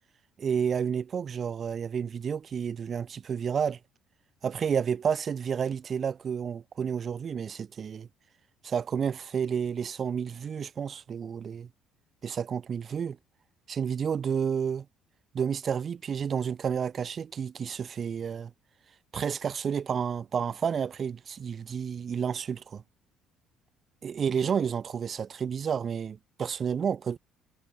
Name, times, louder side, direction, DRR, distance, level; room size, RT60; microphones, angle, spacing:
voice 1, 0.4-3.8 4.4-8.1 8.6-11.7 12.2-13.2 13.7-14.9 15.3-18.5 19.1-22.8 24.0-27.2, right 7 dB, 35° right, 0.4 m, -30 dB
cardioid pair, 145°, 0 cm